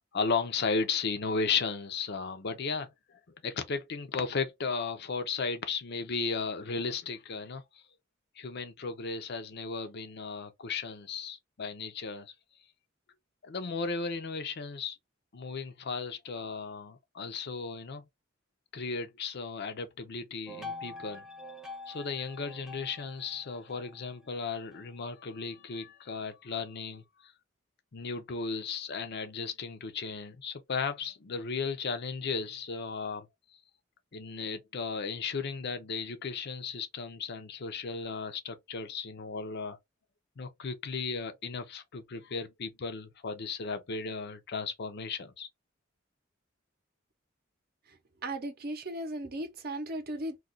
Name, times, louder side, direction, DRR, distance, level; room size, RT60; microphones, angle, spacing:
voice 1, 0.0-2.9 3.4-7.6 8.4-12.3 13.4-15.0 15.3-18.0 18.7-21.2 21.9-27.0 27.9-33.3 34.1-39.8 40.4-45.5, left 4 dB, 55° left, 0.6 m, -35 dB
sound 1, 20.5-24.9, left 2 dB, 5° right, 0.4 m, -45 dB
voice 2, 48.2-50.4, right 1 dB, 50° right, 0.7 m, -36 dB
2.4 x 2.3 x 3.7 m
head